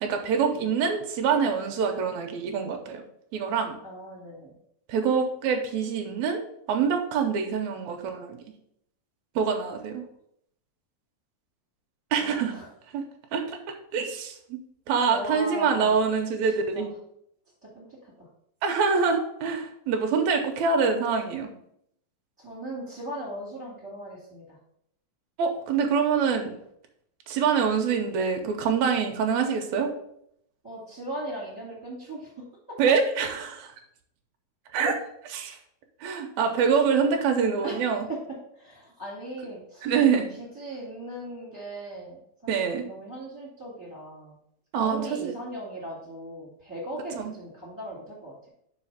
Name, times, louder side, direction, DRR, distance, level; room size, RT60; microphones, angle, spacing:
voice 1, 0.0-3.0 3.3-3.8 4.9-6.4 6.7-8.4 9.3-10.0 12.1-12.5 12.9-13.0 13.3-13.4 13.9-14.6 14.9-16.9 18.6-21.5 25.4-26.5 27.3-29.9 32.8-33.7 34.7-34.9 35.4-35.6 36.0-38.1 39.8-40.3 42.5-42.9 44.7-45.3 47.1-47.3, right 6 dB, 75° right, 4 dB, 1.7 m, -25 dB
voice 2, 3.8-4.5 9.4-9.6 12.2-12.7 15.1-16.0 16.7-16.9 17.7-18.3 22.4-24.6 30.6-32.3 32.7-32.8 34.8-34.9 36.7-37.0 37.6-38.2 38.6-39.9 40.4-44.3 44.7-48.5, right 1 dB, 5° right, -7 dB, 1.7 m, -38 dB
5.7 x 4.4 x 5.6 m, 0.74 s
omnidirectional pair, 4.1 m